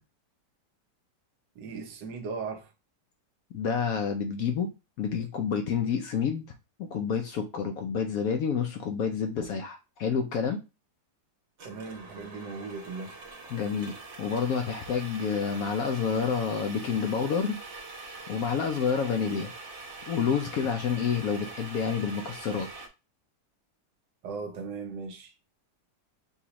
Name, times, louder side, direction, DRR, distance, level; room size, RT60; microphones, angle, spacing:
voice 1, 1.6-2.7 11.6-13.2 24.2-25.3, right 4 dB, 80° right, 1.4 m, -38 dB
voice 2, 3.5-4.7 5.0-6.5 6.8-10.6 13.5-17.6 18.3-19.5 20.1-22.7, left 6 dB, 70° left, 0.9 m, -29 dB
sound 1, 11.6-22.9, right 3 dB, 50° right, 1.0 m, -44 dB
6.8 x 2.4 x 2.9 m
omnidirectional pair, 1.9 m